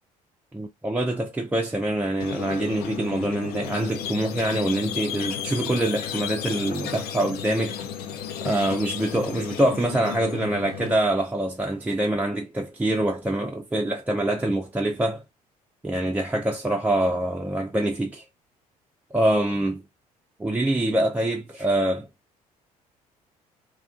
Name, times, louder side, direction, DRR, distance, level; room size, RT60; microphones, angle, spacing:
voice 1, 0.5-7.8 8.4-15.2 15.8-18.2 19.1-19.8 20.4-22.1, right 1 dB, 10° right, 0.4 m, -25 dB
Squeak, 2.2-11.0, left 8 dB, 55° left, 0.5 m, -33 dB
2.7 x 2.3 x 2.4 m
figure-of-eight pair, 55°, 19 cm